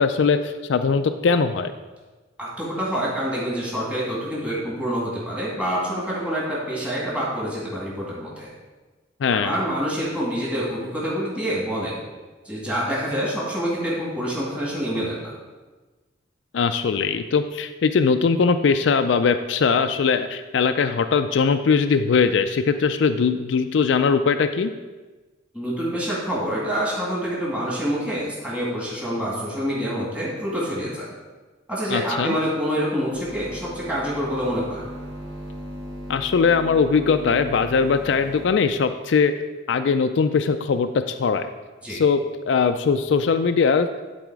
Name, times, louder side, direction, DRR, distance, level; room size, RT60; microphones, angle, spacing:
voice 1, 0.0-1.7 9.2-9.6 16.5-24.7 31.9-32.3 36.1-39.3 39.7-41.5 41.9-43.9, left 5 dB, 75° left, 9 dB, 0.4 m, -20 dB
voice 2, 2.4-8.5 9.3-12.0 12.4-15.3 25.5-31.1 31.7-34.9 41.8-42.0, equal, 5° right, -7 dB, 2.2 m, -27 dB
sound 1, 33.1-38.5, equal, 85° right, 1.6 m, -37 dB
11.5 x 4.2 x 4.7 m, 1.3 s
head